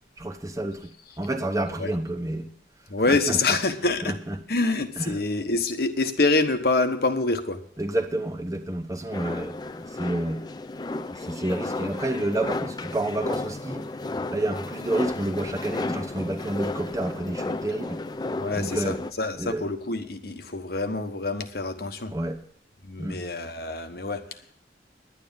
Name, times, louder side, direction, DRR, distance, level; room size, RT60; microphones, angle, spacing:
voice 1, 0.2-0.9 1.2-2.5 3.1-3.4 4.0-4.3 5.0-5.2 7.8-10.5 11.1-13.9 14.3-18.0 18.5-19.0 19.4-19.6 22.1-22.4 23.0-23.2, right 1 dB, 20° right, 0.8 m, -29 dB
voice 2, 2.9-4.1 4.5-7.6 18.4-22.1 22.8-24.2, left 3 dB, 60° left, 1.2 m, -26 dB
sound 1, 9.1-19.1, left 2 dB, 25° left, 0.4 m, -33 dB
10.5 x 9.6 x 7.1 m
head